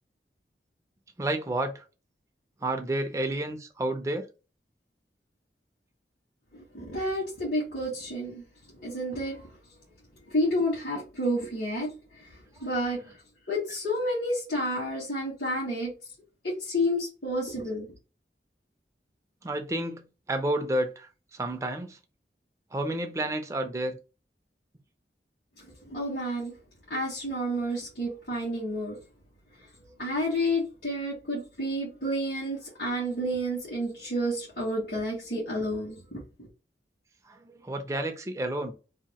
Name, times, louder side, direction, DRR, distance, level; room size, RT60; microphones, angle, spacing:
voice 1, 1.2-1.8 2.6-4.3 19.4-22.0 22.7-24.0 37.3-38.7, right 1 dB, 15° right, 0.4 m, -30 dB
voice 2, 6.5-8.4 8.8-9.5 10.3-12.3 12.6-13.0 13.5-15.9 16.4-17.9 25.9-26.5 26.9-29.0 30.0-36.2, equal, 65° left, 1.3 m, -30 dB
2.8 x 2.5 x 2.8 m
head